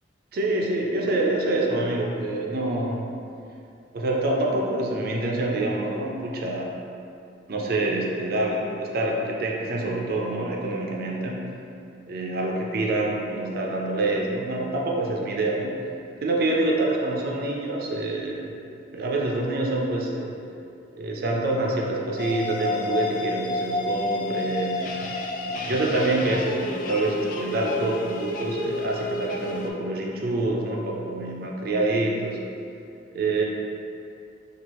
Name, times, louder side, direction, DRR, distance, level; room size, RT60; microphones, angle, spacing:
voice 1, 0.3-3.1 3.9-6.7 7.5-11.4 12.1-15.8 16.2-18.6 18.9-20.4 20.9-24.9 25.5-32.4 33.1-33.4, right 2 dB, 60° right, -1 dB, 0.5 m, -26 dB
sound 1, 22.2-29.7, left 2 dB, 50° left, 0.3 m, -30 dB
4.5 x 2.4 x 3.0 m, 2.6 s
head